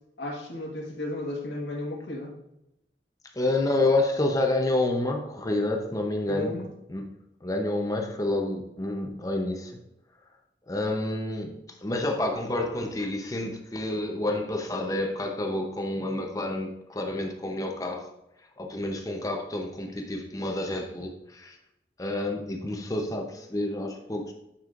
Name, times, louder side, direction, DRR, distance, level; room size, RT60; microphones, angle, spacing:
voice 1, 0.2-2.4 6.3-6.7, left 1 dB, 80° left, -2 dB, 1.5 m, -34 dB
voice 2, 3.3-6.6 6.9-7.1 7.4-9.8 10.6-11.6 11.8-18.1 18.6-21.6 22.0-24.3, left 2 dB, 20° left, 2 dB, 0.7 m, -29 dB
9.2 x 5.5 x 2.5 m, 0.85 s
head